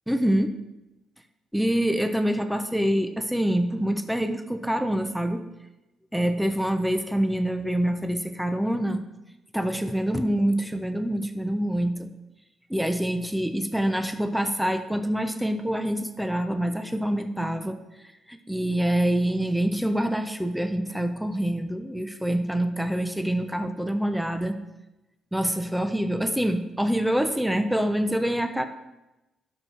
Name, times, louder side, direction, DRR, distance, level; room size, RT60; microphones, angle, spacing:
voice 1, 0.1-0.5 1.5-5.4 6.1-9.0 9.5-12.1 12.7-17.8 18.3-24.6 25.3-28.7, right 1 dB, ahead, 8 dB, 0.5 m, -26 dB
11.5 x 6.3 x 3.3 m, 0.99 s
cardioid pair, 150°, 0 cm